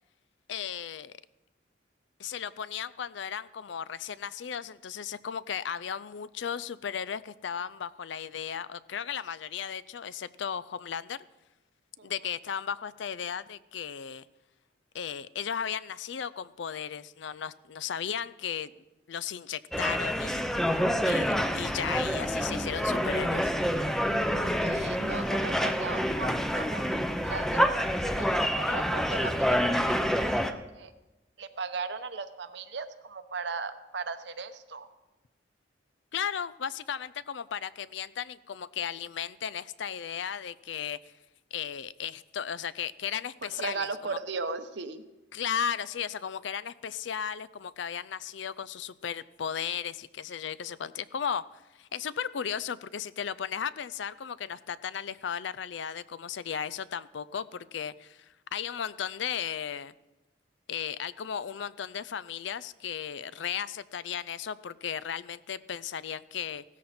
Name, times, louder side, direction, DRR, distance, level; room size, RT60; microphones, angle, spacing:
voice 1, 0.5-1.2 2.2-11.2 12.0-14.3 14.9-18.7 19.1-20.5 21.0-23.5 36.1-41.0 41.5-44.2 45.3-51.4 51.8-59.9 60.7-66.6, left 8 dB, 70° left, 18 dB, 0.5 m, -35 dB
sound 1, 19.7-30.5, equal, ahead, 0.6 m, -27 dB
voice 2, 24.1-26.9 27.2-29.7 30.4-30.9 31.4-34.9 43.4-45.0, right 4 dB, 65° right, 10 dB, 0.9 m, -37 dB
16.0 x 13.5 x 4.3 m, 1.1 s
head